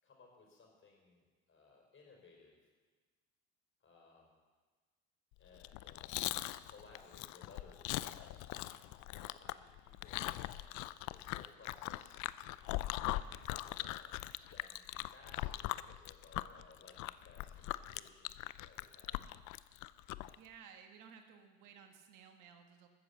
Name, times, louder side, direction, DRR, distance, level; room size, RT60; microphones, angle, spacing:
voice 1, 0.0-2.5 3.8-4.3 5.4-6.3 6.6-12.2 12.7-14.2 14.5-19.3, left 4 dB, 40° left, 0 dB, 5.0 m, -61 dB
Chewing mastication, 5.5-20.4, left 17 dB, 65° left, 0.5 m, -41 dB
voice 2, 20.3-22.9, right 7 dB, 70° right, 5 dB, 1.6 m, -57 dB
14.0 x 7.7 x 7.2 m, 1.4 s
supercardioid pair, 70°, 32 cm